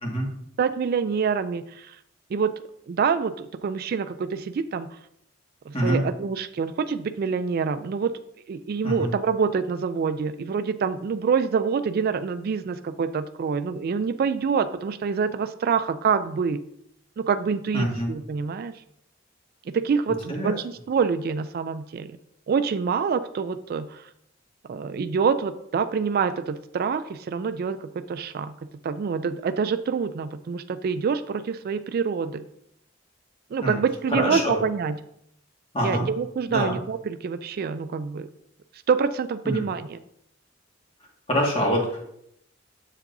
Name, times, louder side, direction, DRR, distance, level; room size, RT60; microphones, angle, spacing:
voice 1, 0.6-2.0 2.3-2.5 2.9-5.0 5.7-8.1 8.5-16.6 17.2-18.7 19.7-22.2 22.5-24.0 24.7-28.5 28.8-32.5 33.5-35.0 35.8-38.3 38.9-40.0, right 6 dB, 50° right, 12 dB, 0.3 m, -26 dB
voice 2, 17.7-18.1 20.3-20.5 33.6-33.8 34.1-34.6 35.7-36.1 36.5-36.8 39.4-39.6 41.3-42.1, equal, 30° left, -1 dB, 1.8 m, -25 dB
7.6 x 7.3 x 2.6 m, 0.74 s
head